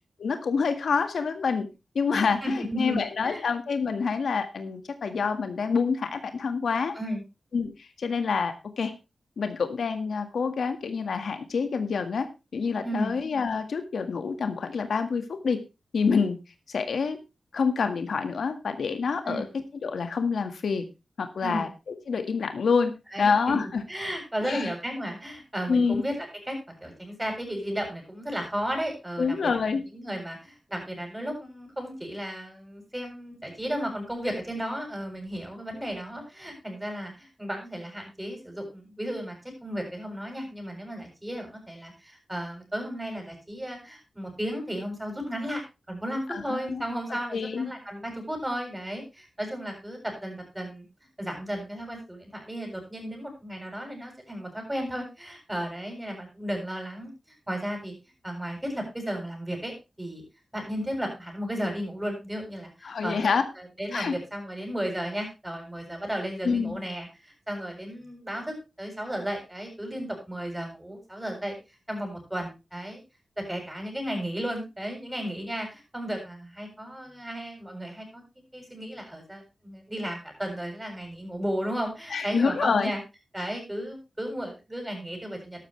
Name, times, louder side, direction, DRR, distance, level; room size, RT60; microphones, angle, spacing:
voice 1, 0.2-1.7 1.9-6.9 7.5-8.9 9.4-12.3 12.5-15.6 15.9-16.4 16.7-17.2 17.5-19.5 19.8-20.8 21.2-22.9 23.2-23.8 24.4-24.7 25.7-26.0 29.2-29.8 46.3-46.8 47.3-47.7 62.8-63.4 63.9-64.1 66.4-66.8 82.1-82.9, left 5 dB, 85° left, 8 dB, 1.8 m, -27 dB
voice 2, 2.2-3.5 6.9-7.2 12.8-13.1 19.2-19.5 21.4-21.7 23.1-23.6 23.9-26.1 26.5-45.6 45.9-50.8 51.2-57.9 58.2-60.2 60.5-71.6 71.9-73.0 73.5-78.2 78.5-83.0 83.3-85.7, equal, 10° right, 3 dB, 7.3 m, -34 dB
13.0 x 12.5 x 3.3 m, 0.26 s
wide cardioid pair, 85°, 0 cm